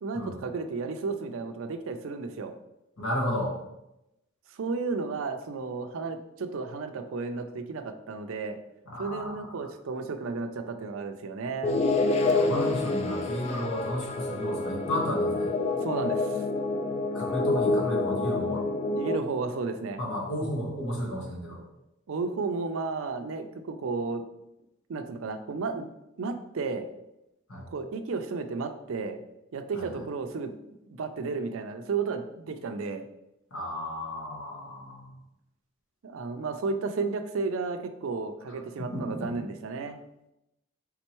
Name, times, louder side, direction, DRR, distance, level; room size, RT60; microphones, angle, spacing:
voice 1, 0.0-2.5 4.5-8.6 9.0-11.8 15.8-16.4 18.9-20.0 22.1-24.2 24.9-25.9 26.2-26.9 27.7-29.2 29.5-33.1 36.0-40.0, right 4 dB, 80° right, 8 dB, 0.4 m, -33 dB
voice 2, 3.0-3.5 8.9-9.7 12.3-15.6 17.1-18.6 20.0-21.6 27.5-27.7 29.7-30.0 33.5-35.1 38.5-39.2, equal, 70° left, -2 dB, 1.2 m, -33 dB
sound 1, 11.6-19.2, left 3 dB, 30° left, 0.3 m, -27 dB
4.3 x 3.7 x 3.0 m, 0.87 s
head